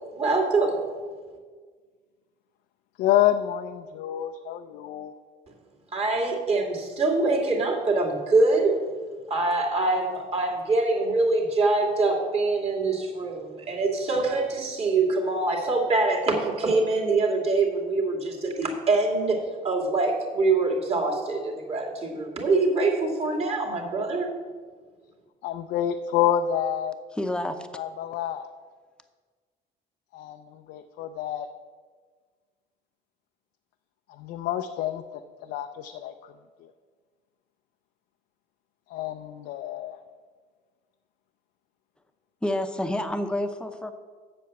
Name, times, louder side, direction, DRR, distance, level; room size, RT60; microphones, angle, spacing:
voice 1, 0.1-0.8 5.9-8.8 9.3-24.3, right 3 dB, 40° right, -1 dB, 2.4 m, -24 dB
voice 2, 3.0-5.1 25.4-27.0 27.7-28.5 30.1-31.5 34.1-35.0 35.4-36.3 36.6-36.7 38.9-40.0, left 11 dB, 85° left, 7 dB, 0.5 m, -28 dB
voice 3, 27.1-27.7 42.4-44.0, left 1 dB, 5° left, 7 dB, 0.8 m, -29 dB
7.7 x 7.1 x 7.0 m, 1.5 s
cardioid pair, 110°, 17 cm